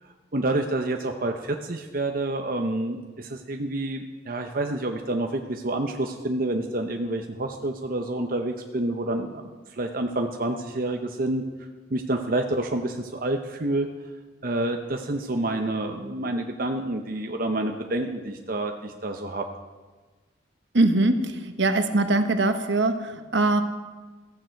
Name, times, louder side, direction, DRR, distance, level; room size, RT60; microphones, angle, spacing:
voice 1, 0.3-9.4 9.7-11.4 11.9-13.9 14.4-19.4, right 2 dB, 50° right, 4 dB, 0.9 m, -28 dB
voice 2, 20.7-23.6, right 2 dB, 70° right, 8 dB, 1.2 m, -22 dB
15.5 x 14.5 x 4.6 m, 1.3 s
head